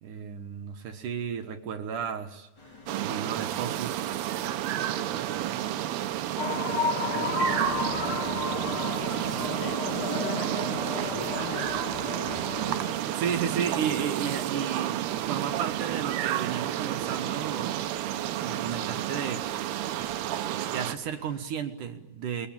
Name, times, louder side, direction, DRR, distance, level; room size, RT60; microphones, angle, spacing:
voice 1, 0.0-2.5 2.9-4.0 12.9-15.0 15.2-17.8 18.4-19.4 20.7-22.5, right 7 dB, 60° right, 7 dB, 2.7 m, -33 dB
sound 1, 2.6-21.4, left 2 dB, 25° left, 4.1 m, -51 dB
sound 2, 2.9-21.0, right 12 dB, 90° right, 3.1 m, -31 dB
voice 2, 6.4-7.4 9.2-11.8 14.2-14.3, left 8 dB, 70° left, 8 dB, 3.0 m, -42 dB
sound 3, 6.4-12.9, left 4 dB, 50° left, 1.8 m, -33 dB
29.0 x 22.5 x 8.9 m, 0.97 s
omnidirectional pair, 4.5 m